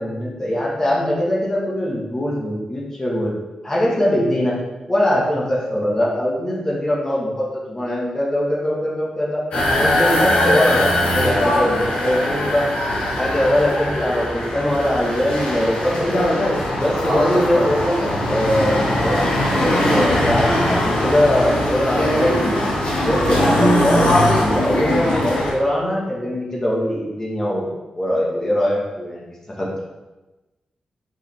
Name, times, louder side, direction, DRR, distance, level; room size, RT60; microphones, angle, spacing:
voice 1, 0.0-3.3 3.6-4.5 4.9-9.4 9.7-12.7 13.1-16.1 16.8-18.0 18.3-22.6 23.0-29.8, left 1 dB, 25° left, -4 dB, 1.6 m, -22 dB
sound 1, 9.5-25.5, left 1 dB, 80° left, 1.8 m, -20 dB
5.3 x 5.3 x 3.5 m, 1.1 s
wide cardioid pair, 115°, 2 cm